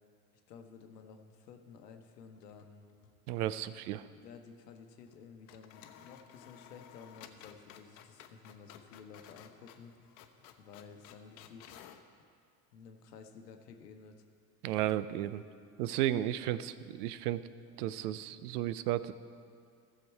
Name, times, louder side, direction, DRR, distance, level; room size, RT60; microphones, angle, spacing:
voice 1, 0.5-2.9 4.1-9.9 10.6-11.9 12.7-14.2, left 6 dB, 85° left, 5 dB, 1.0 m, -53 dB
sound 1, 2.4-3.2 3.5-3.6 5.0-5.2 5.5-12.1, left 9 dB, 65° left, 0.9 m, -56 dB
voice 2, 3.3-4.1 14.6-15.4 15.8-17.4 17.8-19.1, right 13 dB, 75° right, 15 dB, 0.6 m, -33 dB
14.5 x 6.8 x 4.6 m, 2.3 s
hypercardioid pair, 75°, 47 cm